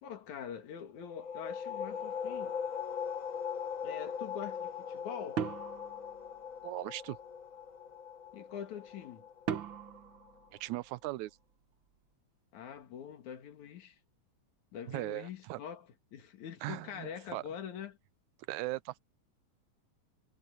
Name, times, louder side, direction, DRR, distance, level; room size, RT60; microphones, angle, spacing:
voice 1, 0.0-2.6 3.8-5.5 8.3-9.3 12.5-14.0 14.7-18.0, left 8 dB, 80° left, 3.2 m, -44 dB
sound 1, 1.0-10.4, left 7 dB, 55° left, 0.9 m, -40 dB
sound 2, 5.4-6.9 9.5-11.3, right 8 dB, 55° right, 1.6 m, -40 dB
voice 2, 6.6-7.2 10.6-11.3 14.9-15.6 16.6-17.4 18.5-19.0, right 19 dB, 85° right, 2.0 m, -38 dB
omnidirectional pair, 3.3 m